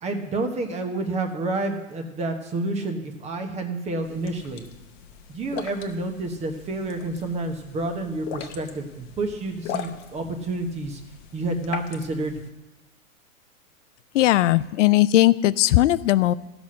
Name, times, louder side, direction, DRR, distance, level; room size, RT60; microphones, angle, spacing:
voice 1, 0.0-4.7 5.3-11.0 11.3-12.4, right 2 dB, 15° right, 6 dB, 1.1 m, -29 dB
sound 1, 4.0-12.5, left 9 dB, 30° left, 0.8 m, -40 dB
voice 2, 14.1-16.3, left 15 dB, 65° left, 17 dB, 0.5 m, -18 dB
14.5 x 6.0 x 6.3 m, 1.0 s
hypercardioid pair, 140°, 41 cm